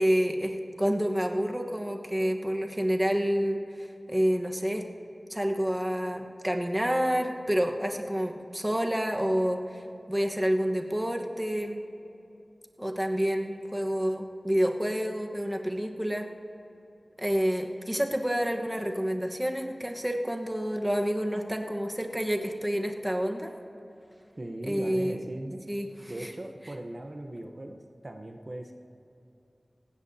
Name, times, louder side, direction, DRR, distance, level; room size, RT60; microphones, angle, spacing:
voice 1, 0.0-4.9 5.3-9.8 10.1-11.8 12.8-16.3 17.2-23.5 24.7-25.2 25.7-25.9, equal, 10° right, 3 dB, 1.2 m, -28 dB
voice 2, 24.4-25.6 26.1-28.7, right 1 dB, 50° right, 4 dB, 0.9 m, -39 dB
18.5 x 16.0 x 2.8 m, 2.9 s
wide cardioid pair, 40°, 0 cm